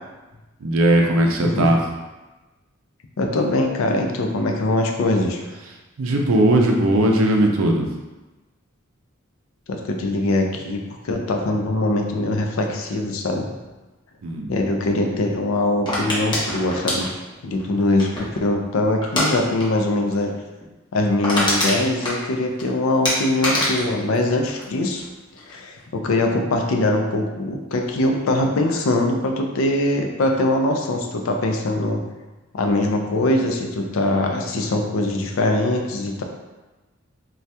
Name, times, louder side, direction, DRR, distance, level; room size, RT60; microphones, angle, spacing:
voice 1, 0.6-1.8 6.0-7.9 14.2-14.5, right 1 dB, 85° right, 1 dB, 0.5 m, -18 dB
voice 2, 3.2-5.4 9.7-10.8 11.0-13.5 14.5-17.1 17.4-20.3 20.9-25.0 25.5-32.0 32.5-36.2, left 2 dB, 75° left, 3 dB, 0.4 m, -22 dB
sound 1, 15.9-18.4 19.0-19.3 19.6-19.8 20.1-20.2 20.6-20.7 21.0-22.6 23.0-25.1 25.4-25.8, left 1 dB, 20° left, 0.7 m, -24 dB
2.7 x 2.3 x 3.2 m, 1.1 s
head